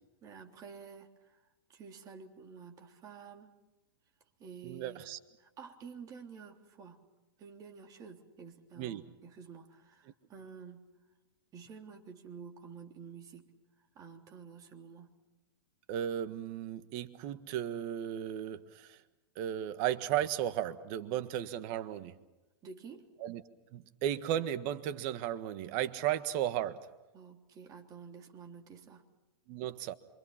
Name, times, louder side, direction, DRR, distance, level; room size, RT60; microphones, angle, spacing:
voice 1, 0.2-1.4 1.7-3.5 4.4-5.0 5.4-7.0 7.4-10.9 11.5-13.5 13.9-15.1 22.6-23.1 27.1-29.1, right 6 dB, 30° right, 3.4 m, -50 dB
voice 2, 4.6-5.2 8.8-9.0 15.9-19.0 19.3-22.1 23.2-23.4 23.7-26.9 29.5-29.9, right 11 dB, 45° right, 1.5 m, -35 dB
27.5 x 25.5 x 5.9 m
hypercardioid pair, 130°, 13 cm